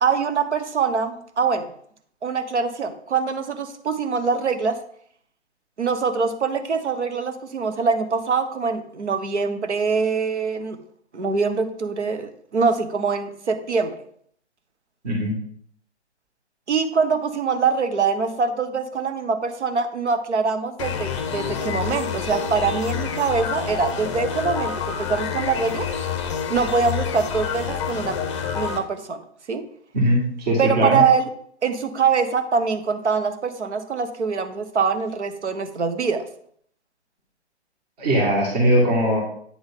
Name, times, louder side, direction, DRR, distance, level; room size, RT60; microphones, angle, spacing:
voice 1, 0.0-1.7 2.2-4.8 5.8-10.8 11.1-13.9 16.7-25.9 26.5-28.2 28.5-29.2 29.5-29.6 30.6-31.3 31.6-36.2, right 5 dB, 75° right, 9 dB, 1.0 m, -23 dB
sound 1, 20.8-28.8, left 7 dB, 25° left, 0.6 m, -28 dB
voice 2, 29.9-31.0 38.0-39.2, equal, 35° right, -2 dB, 1.8 m, -20 dB
8.7 x 3.7 x 3.6 m, 0.63 s
figure-of-eight pair, 140°, 35 cm